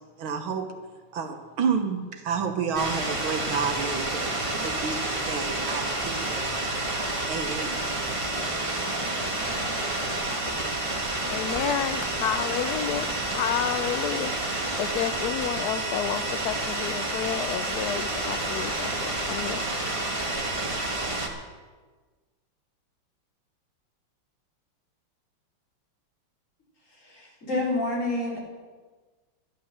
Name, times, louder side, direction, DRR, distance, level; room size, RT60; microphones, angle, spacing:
voice 1, 0.2-0.7 1.1-6.7 7.3-7.8, right 6 dB, 75° right, 6 dB, 2.0 m, -30 dB
sound 1, 2.7-21.3, right 2 dB, 15° right, 1.3 m, -29 dB
voice 2, 11.3-14.4 14.8-19.6, left 9 dB, 85° left, 11 dB, 0.8 m, -30 dB
voice 3, 27.0-28.4, left 2 dB, 35° left, -5 dB, 4.5 m, -28 dB
12.0 x 11.0 x 7.3 m, 1.4 s
omnidirectional pair, 2.3 m